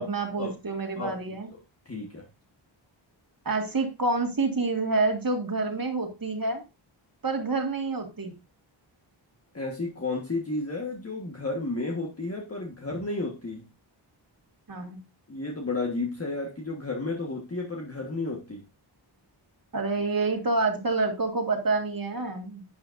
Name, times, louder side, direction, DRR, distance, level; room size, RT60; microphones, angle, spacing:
voice 1, 0.0-1.5 3.5-6.6 7.2-8.3 14.7-15.0 19.7-22.6, right 3 dB, 45° right, 4 dB, 2.0 m, -28 dB
voice 2, 1.8-2.3 9.5-13.6 15.3-18.6, left 3 dB, 30° left, -1 dB, 1.5 m, -32 dB
10.5 x 9.4 x 2.6 m, 0.27 s
wide cardioid pair, 115°, 48 cm